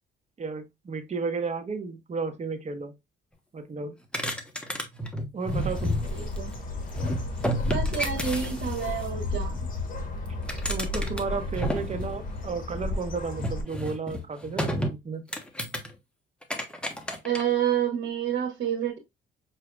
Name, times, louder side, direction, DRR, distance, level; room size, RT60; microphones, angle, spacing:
voice 1, 0.4-2.9 3.5-4.0 5.3-6.0 10.7-15.2, right 4 dB, 35° right, 1.0 m, -33 dB
sound 1, 4.1-6.6 6.9-9.1 10.3-12.5 13.4-14.9 15.3-15.9 16.4-17.4, equal, 5° left, 0.9 m, -31 dB
Bird, 5.5-13.6, left 2 dB, 45° left, 1.4 m, -33 dB
voice 2, 6.1-6.5 7.7-9.6 17.2-19.0, right 9 dB, 70° right, 1.2 m, -28 dB
6.1 x 2.8 x 2.2 m
cardioid pair, 90°, 20 cm